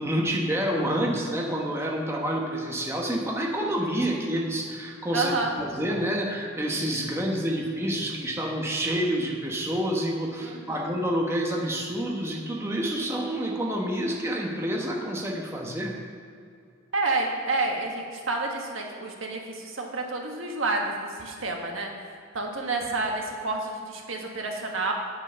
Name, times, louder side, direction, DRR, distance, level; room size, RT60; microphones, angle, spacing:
voice 1, 0.0-16.0, equal, 15° right, -1 dB, 1.1 m, -28 dB
voice 2, 5.1-5.5 10.4-10.9 16.9-21.9 22.3-24.9, right 3 dB, 75° right, 1 dB, 1.5 m, -29 dB
9.1 x 8.6 x 5.6 m, 2.4 s
head